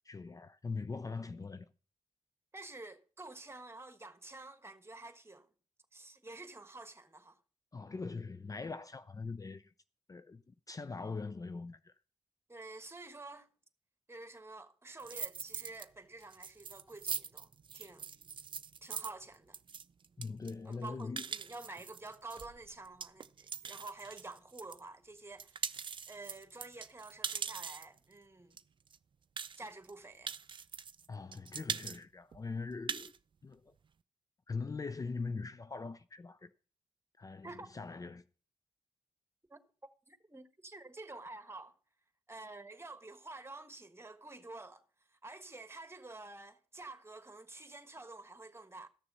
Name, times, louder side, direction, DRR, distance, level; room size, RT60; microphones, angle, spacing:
voice 1, 0.1-1.7 7.7-9.7 10.1-11.9 20.2-21.2 31.1-33.1 33.4-33.7 34.5-36.5 37.2-38.2, left 4 dB, 30° left, 0.5 m, -42 dB
voice 2, 2.5-5.5 5.9-7.4 12.5-13.5 14.1-18.1 18.8-19.6 20.6-25.7 26.1-28.6 29.6-30.3 37.4-37.7 39.5-39.6 40.1-41.8 42.3-44.8 45.1-48.9, right 2 dB, 20° right, 1.4 m, -49 dB
sound 1, 15.0-15.9 16.2-24.8 25.2-28.0 28.6-28.7 28.9-29.0 29.4-29.9 30.3-31.1 31.3-32.0 32.3-32.4 32.7-33.2, right 6 dB, 45° right, 0.5 m, -42 dB
13.0 x 6.8 x 5.5 m
supercardioid pair, 45°, 12 cm